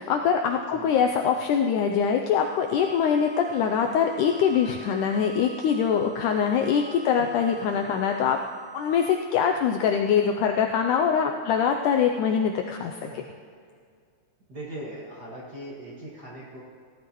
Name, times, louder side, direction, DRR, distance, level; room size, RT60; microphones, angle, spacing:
voice 1, 0.0-8.4 8.7-13.2, left 7 dB, 80° left, 4 dB, 1.8 m, -23 dB
sound 1, 2.4-9.1, right 4 dB, 75° right, 4.8 m, -45 dB
voice 2, 14.5-16.6, right 1 dB, 35° right, -5 dB, 1.8 m, -40 dB
17.0 x 12.5 x 3.1 m, 2.2 s
omnidirectional pair, 4.1 m